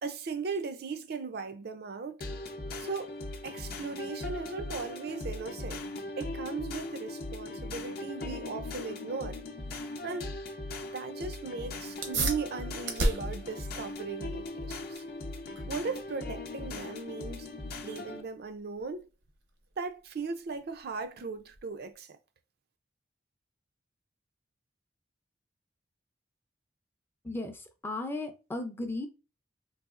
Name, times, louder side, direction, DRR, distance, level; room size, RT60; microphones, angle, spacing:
voice 1, 0.0-2.2 2.8-3.1 3.4-5.8 6.2-9.4 10.0-10.3 10.8-15.0 15.7-17.5 17.8-19.1 19.8-22.2, right 4 dB, 55° right, 0.4 m, -38 dB
sound 1, 2.2-18.2, left 2 dB, 55° left, 0.6 m, -39 dB
sound 2, 12.0-22.0, right 2 dB, 75° right, 0.8 m, -38 dB
voice 2, 27.2-29.1, left 2 dB, 10° left, 0.4 m, -36 dB
4.0 x 2.4 x 2.4 m
head